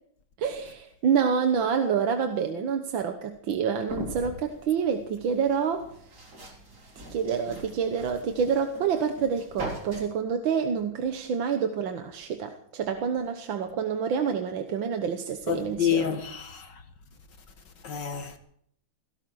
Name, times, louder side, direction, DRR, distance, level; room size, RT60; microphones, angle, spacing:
voice 1, 0.4-5.9 7.1-16.2, right 7 dB, 70° right, 1.8 m, -27 dB
sound 1, 3.9-10.0, right 1 dB, 50° right, 4.4 m, -41 dB
voice 2, 15.5-16.7 17.8-18.4, left 9 dB, 60° left, 2.3 m, -28 dB
17.5 x 17.5 x 4.7 m
omnidirectional pair, 2.2 m